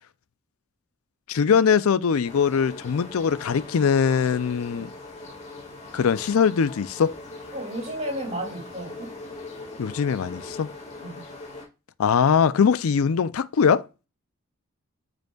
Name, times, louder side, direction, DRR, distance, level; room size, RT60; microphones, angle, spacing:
voice 1, 1.3-4.9 5.9-7.1 9.8-10.7 12.0-13.9, left 6 dB, 75° left, 0.4 m, -21 dB
sound 1, 2.2-11.6, left 2 dB, 30° left, 1.8 m, -41 dB
voice 2, 7.5-9.1 11.0-11.3, right 1 dB, 30° right, 2.7 m, -33 dB
9.2 x 5.1 x 2.3 m
head